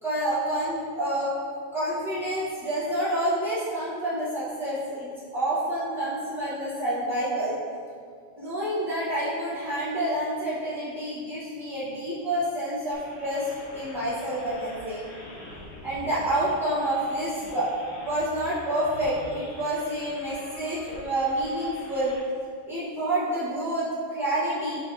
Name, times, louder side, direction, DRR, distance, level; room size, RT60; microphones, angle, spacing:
voice 1, 0.0-1.3 1.7-5.1 5.3-7.6 8.4-15.0 15.8-17.7 18.0-22.1 22.7-24.8, right 1 dB, ahead, -12 dB, 0.9 m, -28 dB
sound 1, 12.9-22.2, left 1 dB, 65° left, 1.1 m, -45 dB
4.0 x 3.1 x 4.1 m, 2.1 s
omnidirectional pair, 2.4 m